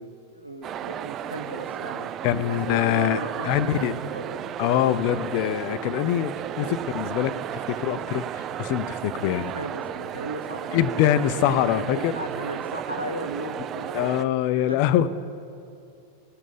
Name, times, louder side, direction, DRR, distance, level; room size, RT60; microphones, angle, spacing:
voice 1, 0.0-2.1 2.5-4.5 6.6-6.8 9.3-11.0 11.4-14.8, right 1 dB, 90° right, 4 dB, 1.0 m, -36 dB
sound 1, 0.6-14.3, right 10 dB, 30° right, 0.3 m, -34 dB
voice 2, 2.2-3.9 4.6-9.5 10.7-12.1 13.9-15.1, left 11 dB, 45° left, 15 dB, 0.4 m, -24 dB
17.5 x 7.1 x 5.7 m, 2.6 s
figure-of-eight pair, 90°, 0 cm